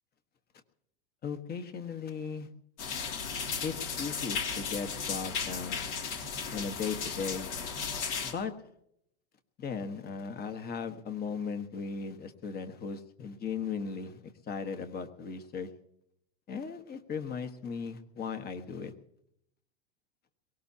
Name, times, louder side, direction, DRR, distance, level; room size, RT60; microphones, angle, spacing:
voice 1, 1.2-2.5 3.6-5.8 6.5-7.5 8.2-8.5 9.6-15.7 16.5-18.9, left 5 dB, 30° left, 8 dB, 1.5 m, -37 dB
sound 1, 2.8-8.3, left 6 dB, 60° left, 2.7 m, -35 dB
22.5 x 18.5 x 2.9 m, 0.76 s
hypercardioid pair, 110°, 33 cm